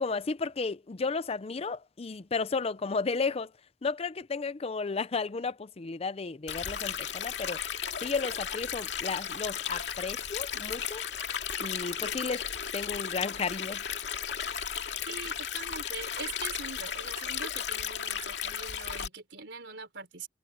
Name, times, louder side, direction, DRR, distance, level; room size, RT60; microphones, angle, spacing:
voice 1, 0.0-3.5 3.8-7.6 8.0-11.0 11.6-12.4 12.7-13.8, left 4 dB, 35° left, 0.5 m, -33 dB
Stream, 6.5-19.1, left 8 dB, 80° left, 2.2 m, -35 dB
voice 2, 15.1-20.3, right 4 dB, 75° right, 4.1 m, -42 dB
head